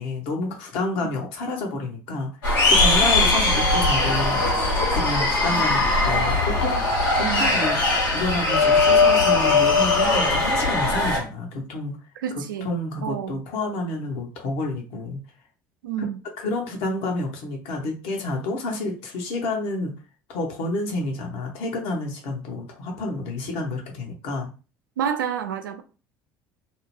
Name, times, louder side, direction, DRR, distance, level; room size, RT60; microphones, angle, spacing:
voice 1, 0.0-2.3 2.7-4.5 4.9-7.8 8.1-12.0 12.3-15.2 16.4-19.9 20.3-24.5, left 2 dB, 65° left, 1.0 m, -29 dB
sound 1, 2.4-11.2, left 3 dB, 85° left, 1.3 m, -20 dB
voice 2, 3.0-3.3 5.5-6.3 7.2-7.5 12.2-13.4 15.8-16.2 25.0-25.8, right 9 dB, 85° right, 0.4 m, -30 dB
2.7 x 2.1 x 3.0 m
hypercardioid pair, 65°, 11 cm